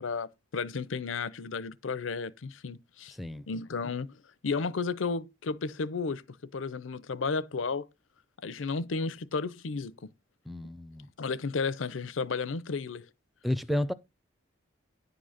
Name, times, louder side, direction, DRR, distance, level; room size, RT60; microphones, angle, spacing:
voice 1, 0.0-3.2 3.5-7.9 8.4-9.9 11.2-13.1, left 4 dB, 90° left, 0.6 m, -33 dB
voice 2, 10.5-11.1 13.4-13.9, left 1 dB, ahead, 0.5 m, -31 dB
10.5 x 3.9 x 6.4 m
head